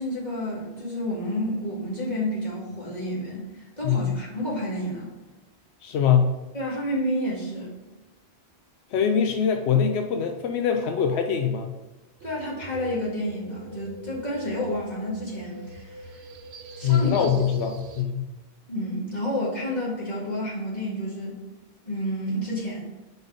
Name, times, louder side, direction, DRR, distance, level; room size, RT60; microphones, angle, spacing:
voice 1, 0.0-3.4 3.8-5.1 6.5-7.8 12.2-16.2 16.8-17.1 18.7-21.4 21.8-22.8, equal, 45° left, -7 dB, 2.3 m, -30 dB
voice 2, 5.8-6.3 8.9-11.7 16.8-18.3, left 7 dB, 90° left, 5 dB, 0.9 m, -23 dB
sound 1, 12.2-18.0, right 3 dB, 80° right, 0.9 m, -43 dB
5.3 x 4.1 x 5.2 m, 1.1 s
omnidirectional pair, 1.1 m